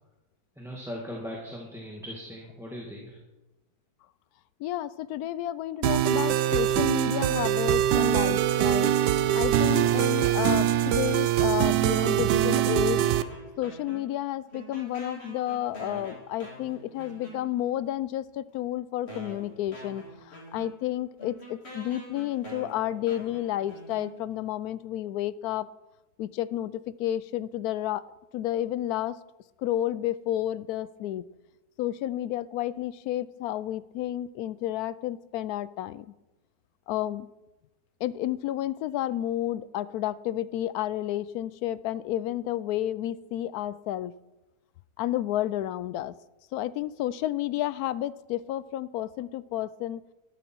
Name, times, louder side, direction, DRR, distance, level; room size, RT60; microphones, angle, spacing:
voice 1, 0.6-3.2, equal, ahead, -2 dB, 1.8 m, -39 dB
voice 2, 4.6-13.0 13.6-25.7 26.2-28.0 28.3-29.2 29.6-31.2 31.8-36.1 36.9-37.3 38.0-44.1 45.0-46.1 46.5-50.0, left 13 dB, 70° left, 17 dB, 1.0 m, -31 dB
sound 1, 5.8-13.2, right 11 dB, 80° right, 1.2 m, -23 dB
sound 2, 12.4-14.3 14.5-17.8 18.5-18.6 19.1-24.5, equal, 40° left, 3.4 m, -44 dB
13.5 x 12.0 x 4.6 m, 1.0 s
omnidirectional pair, 1.8 m